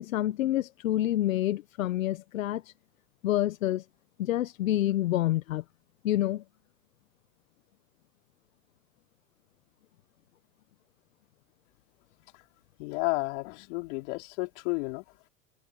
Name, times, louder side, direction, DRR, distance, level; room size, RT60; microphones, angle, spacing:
voice 1, 0.0-2.7 3.2-3.8 4.2-5.6 6.0-6.4, left 14 dB, 80° left, 1.3 m, -28 dB
voice 2, 12.8-15.0, left 28 dB, 60° left, 4.1 m, -32 dB
hypercardioid pair, 110°, 39 cm